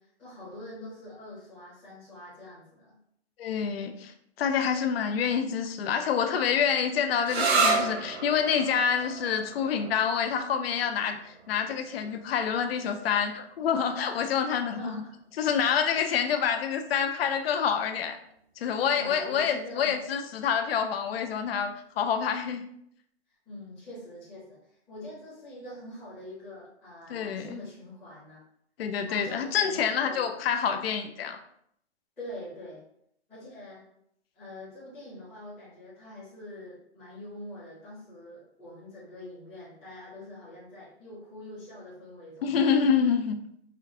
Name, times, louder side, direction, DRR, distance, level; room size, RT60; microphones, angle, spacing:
voice 1, 0.0-3.0 14.3-15.2 18.9-19.9 23.5-28.4 29.0-30.4 32.2-32.8 33.3-33.8 34.3-42.7, left 1 dB, 5° left, -15 dB, 0.7 m, -44 dB
voice 2, 3.4-4.1 4.4-15.0 15.4-18.2 18.6-22.6 27.1-27.6 28.8-31.4 42.4-43.4, left 7 dB, 65° left, 7 dB, 0.5 m, -27 dB
sound 1, 7.3-14.6, right 3 dB, 70° right, 0.8 m, -32 dB
4.9 x 2.5 x 2.7 m, 0.71 s
hypercardioid pair, 175°, 33 cm